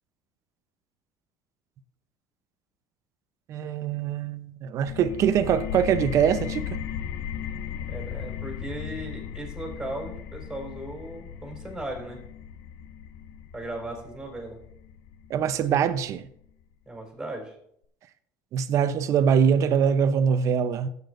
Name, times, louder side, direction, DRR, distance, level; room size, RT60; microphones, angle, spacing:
voice 1, 3.5-6.8 15.3-16.3 18.5-20.9, right 8 dB, 45° right, 0.7 m, -23 dB
sound 1, 4.9-16.3, left 8 dB, 70° left, 0.6 m, -36 dB
voice 2, 7.9-12.2 13.5-14.6 16.9-17.5, right 1 dB, 10° right, 4.2 m, -37 dB
16.0 x 8.3 x 2.6 m
cardioid pair, 130°, 7 cm